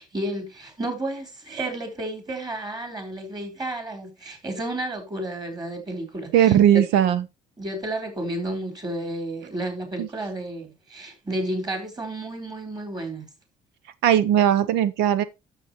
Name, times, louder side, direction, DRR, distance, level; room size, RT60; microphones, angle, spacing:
voice 1, 0.0-6.8 7.6-13.3, right 1 dB, 25° right, 4.2 m, -32 dB
voice 2, 6.3-7.2 10.0-10.1 14.0-15.2, right 10 dB, 90° right, 0.8 m, -18 dB
12.0 x 7.4 x 3.0 m
cardioid pair, 110°, 17 cm